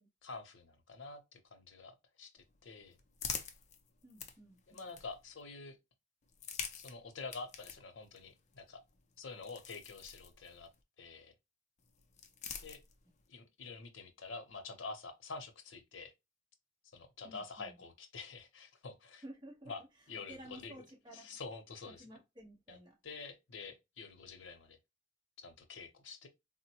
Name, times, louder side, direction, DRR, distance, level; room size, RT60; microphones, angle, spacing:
voice 1, 0.2-3.0 4.7-5.8 6.7-8.8 9.2-10.7 11.0-11.3 12.6-12.8 13.3-16.1 16.9-19.2 19.7-19.8 20.1-20.7 21.1-22.0 22.7-22.8 23.0-24.8 25.4-26.3, left 4 dB, 90° left, 0.7 m, -48 dB
sound 1, 2.4-5.4 6.2-10.8 11.8-13.3, left 7 dB, 40° left, 0.5 m, -47 dB
voice 2, 4.0-4.9 17.2-17.8 19.2-19.7 20.3-21.4 21.8-23.0, right 1 dB, 25° right, 1.1 m, -53 dB
3.7 x 2.1 x 2.8 m
head